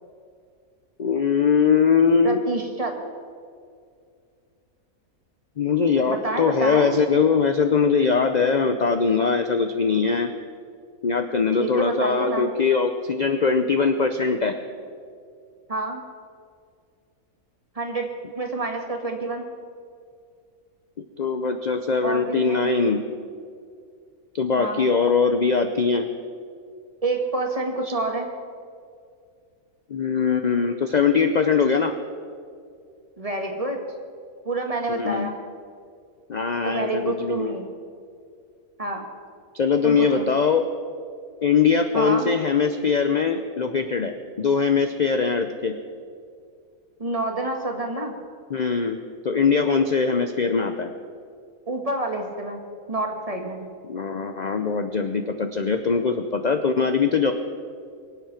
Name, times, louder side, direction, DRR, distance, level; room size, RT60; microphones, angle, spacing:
voice 1, 1.0-2.4 5.6-10.3 11.0-14.5 21.2-23.0 24.3-26.1 29.9-31.9 34.9-35.3 36.3-37.6 39.5-40.6 41.4-45.8 48.5-50.9 53.8-57.3, left 5 dB, 45° left, 7 dB, 0.5 m, -21 dB
voice 2, 2.2-2.9 6.1-7.0 11.6-12.5 15.7-16.0 17.7-18.1 18.3-19.5 22.0-22.7 24.5-24.9 27.0-28.3 33.2-33.8 34.4-35.4 36.6-37.7 38.8-39.0 39.8-40.3 41.9-42.3 47.0-48.1 51.7-52.6 52.9-53.6, right 2 dB, 25° right, 2 dB, 1.6 m, -28 dB
23.5 x 8.2 x 5.9 m, 2.2 s
omnidirectional pair, 1.5 m